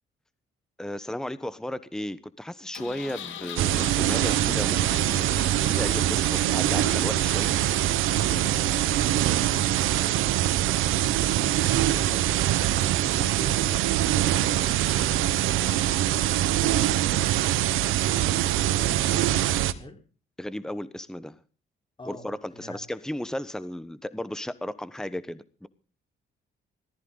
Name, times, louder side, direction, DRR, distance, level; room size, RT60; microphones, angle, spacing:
voice 1, 0.8-7.6 20.4-21.4 22.1-25.7, left 1 dB, 5° left, 15 dB, 1.1 m, -34 dB
Engine, 2.7-10.2, left 9 dB, 75° left, 2.7 m, -43 dB
sound 1, 3.6-19.7, right 13 dB, 90° right, 1.1 m, -23 dB
voice 2, 8.3-11.3 11.6-19.4 19.7-20.0 22.0-22.8, left 1 dB, 25° left, 5 dB, 4.1 m, -45 dB
19.0 x 14.0 x 4.0 m, 0.39 s
cardioid pair, 90°, 20 cm